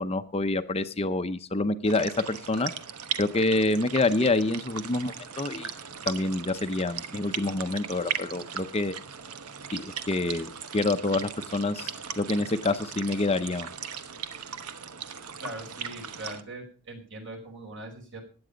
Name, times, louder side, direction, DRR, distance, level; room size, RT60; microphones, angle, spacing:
voice 1, 0.0-2.7 3.2-5.7 6.1-8.9 9.7-13.7, left 2 dB, 25° left, 10 dB, 0.6 m, -27 dB
sound 1, 1.8-16.4, right 7 dB, 85° right, 1.1 m, -38 dB
voice 2, 15.4-18.2, right 2 dB, 55° right, 4 dB, 4.9 m, -41 dB
16.0 x 9.7 x 5.1 m, 0.41 s
head